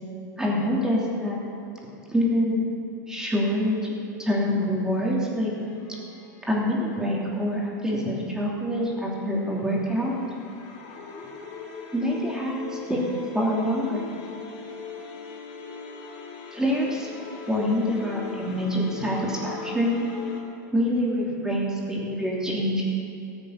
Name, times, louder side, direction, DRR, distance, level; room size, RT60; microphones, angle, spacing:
voice 1, 0.4-1.4 2.1-2.7 3.1-3.9 4.2-5.5 6.4-10.2 11.9-13.0 13.3-14.0 16.5-17.1 17.5-20.0 20.7-22.8, equal, 5° right, -4 dB, 3.0 m, -25 dB
sound 1, 5.5-7.4 8.9-20.4, left 5 dB, 50° left, 2.4 m, -40 dB
15.0 x 8.3 x 6.6 m, 3.0 s
hypercardioid pair, 110°, 10 cm